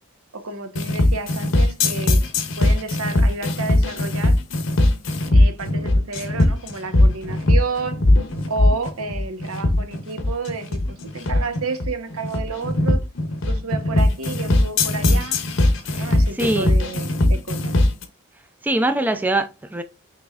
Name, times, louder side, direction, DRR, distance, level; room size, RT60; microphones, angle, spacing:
voice 1, 0.3-2.3 2.6-4.4 5.3-8.0 8.5-13.0 13.5-15.4 16.0-17.8, right 3 dB, 85° right, 0.8 m, -31 dB
sound 1, 0.8-18.0, left 1 dB, 60° left, 0.8 m, -19 dB
voice 2, 15.9-16.7 18.6-19.8, right 2 dB, 10° right, 0.3 m, -23 dB
5.9 x 3.1 x 2.4 m
head